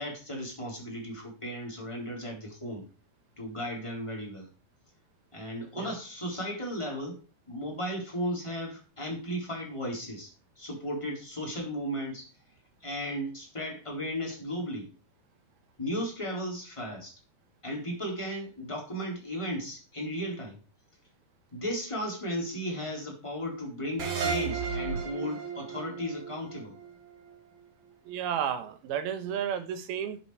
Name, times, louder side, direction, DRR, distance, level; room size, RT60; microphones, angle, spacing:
voice 1, 0.0-2.8 3.4-4.5 5.3-7.2 7.5-10.3 10.6-12.3 12.8-14.9 15.8-17.1 17.6-20.6 21.5-26.8, equal, 10° left, -1 dB, 3.3 m, -35 dB
sound 1, 24.0-27.3, right 6 dB, 50° right, 3.0 m, -34 dB
voice 2, 28.0-30.2, right 8 dB, 70° right, 8 dB, 3.0 m, -32 dB
12.0 x 8.0 x 4.8 m, 0.34 s
omnidirectional pair, 4.8 m